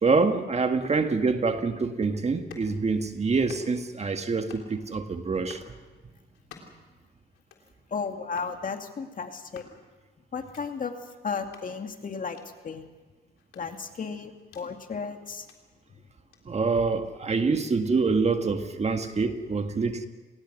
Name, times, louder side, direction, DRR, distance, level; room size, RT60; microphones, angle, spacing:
voice 1, 0.0-5.6 16.4-20.1, right 4 dB, 35° right, 7 dB, 1.7 m, -26 dB
sound 1, 2.3-2.7 3.3-3.9 4.3-4.7 5.3-5.7 6.3-6.9 7.3-7.7 8.3-8.6 9.3-9.8 10.3-10.6 11.4-11.7 12.3-12.5 13.4-14.7 15.3-15.6 16.3-16.4, left 6 dB, 85° left, 3.6 m, -50 dB
voice 2, 7.9-9.7 10.3-10.9 11.2-12.4 12.6-12.8 13.5-15.5 15.9-16.0, left 5 dB, 45° left, 5 dB, 2.4 m, -34 dB
28.5 x 19.5 x 6.3 m, 1.3 s
cardioid pair, 90°, 20 cm